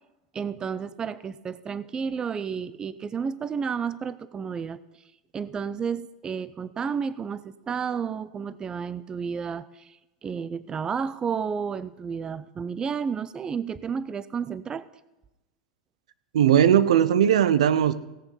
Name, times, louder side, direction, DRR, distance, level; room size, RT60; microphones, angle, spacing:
voice 1, 0.3-4.8 5.3-10.0 10.2-14.9, right 6 dB, 25° right, 17 dB, 0.5 m, -31 dB
voice 2, 16.3-17.9, right 10 dB, 85° right, 15 dB, 0.7 m, -18 dB
17.0 x 7.0 x 5.5 m, 0.99 s
hypercardioid pair, 110°, 3 cm